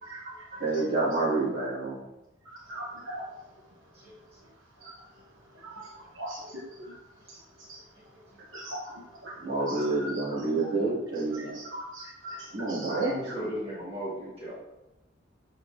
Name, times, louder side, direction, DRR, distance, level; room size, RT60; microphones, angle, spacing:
voice 1, 0.6-1.9 9.4-11.6 12.5-13.1, right 3 dB, 50° right, -6 dB, 2.6 m, -28 dB
voice 2, 2.7-3.2 4.8-4.9 5.6-5.8 6.2-6.9 8.5-8.8 9.2-10.1 11.3-13.0, right 1 dB, 80° right, -4 dB, 1.1 m, -40 dB
voice 3, 12.8-14.5, equal, 30° right, -9 dB, 2.2 m, -37 dB
7.3 x 6.5 x 2.7 m, 0.97 s
head